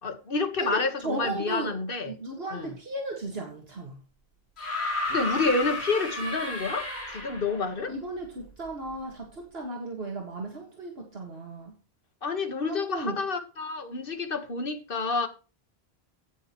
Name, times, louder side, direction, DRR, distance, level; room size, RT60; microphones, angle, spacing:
voice 1, 0.0-2.1 2.5-2.7 5.1-7.9 12.2-15.3, left 4 dB, 60° left, 1.6 m, -29 dB
voice 2, 0.6-1.7 2.0-4.0 7.9-11.7 12.6-13.2, right 2 dB, 70° right, 2.1 m, -35 dB
sound 1, 4.6-7.6 8.9-9.0, left 1 dB, 80° left, 4.0 m, -32 dB
17.0 x 6.4 x 3.0 m
omnidirectional pair, 1.1 m